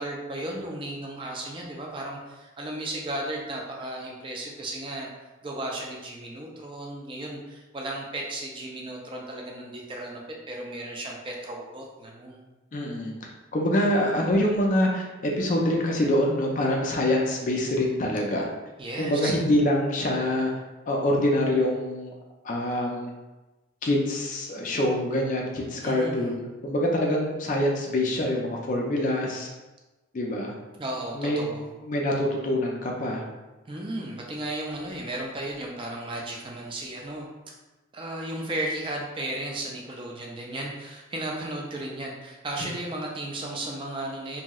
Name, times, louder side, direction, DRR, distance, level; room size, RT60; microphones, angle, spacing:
voice 1, 0.0-5.1 5.4-10.2 10.5-12.4 18.8-19.3 25.8-26.3 30.8-31.7 33.7-37.3 37.9-44.4, right 1 dB, 25° right, -1 dB, 0.4 m, -34 dB
voice 2, 12.7-13.1 13.5-18.5 19.0-20.5 20.9-22.1 22.4-23.1 23.8-29.5 30.1-30.5 31.1-31.4 31.8-33.2, left 1 dB, 40° left, -1 dB, 0.4 m, -25 dB
2.9 x 2.6 x 2.3 m, 1.1 s
head